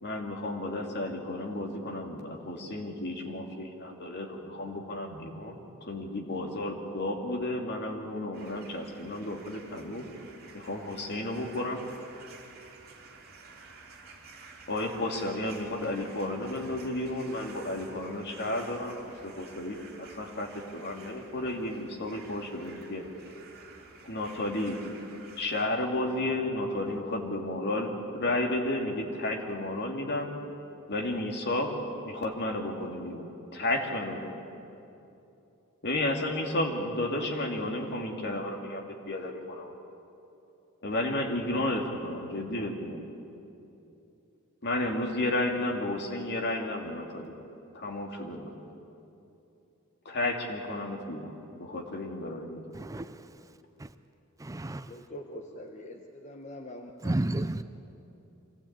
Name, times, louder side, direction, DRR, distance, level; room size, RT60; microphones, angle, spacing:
voice 1, 0.0-10.0 10.5-11.8 14.7-19.0 19.2-23.0 24.0-24.8 25.4-30.3 30.9-31.8 32.1-33.2 33.5-34.3 35.8-39.8 40.8-43.1 44.6-47.3 47.7-48.5 50.0-52.6, left 1 dB, 50° left, 1 dB, 2.6 m, -32 dB
sound 1, 8.3-25.6, right 4 dB, 50° right, 2.9 m, -51 dB
voice 2, 52.7-53.2 53.8-53.9 54.4-54.9 57.0-57.6, right 1 dB, 15° right, 11 dB, 0.4 m, -31 dB
voice 3, 54.9-57.6, left 1 dB, 35° left, 2 dB, 1.2 m, -44 dB
25.0 x 16.5 x 8.8 m, 2.8 s
head